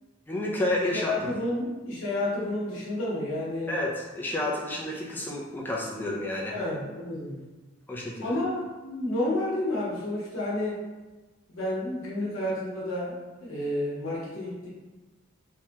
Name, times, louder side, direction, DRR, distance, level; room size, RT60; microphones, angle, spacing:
voice 1, 0.3-1.3 3.7-6.6 7.9-8.3, left 1 dB, 10° left, -3 dB, 0.3 m, -30 dB
voice 2, 0.9-3.7 6.5-7.4 8.2-10.8 11.5-14.7, left 1 dB, 70° left, -6 dB, 0.9 m, -30 dB
3.1 x 2.2 x 2.8 m, 1.2 s
head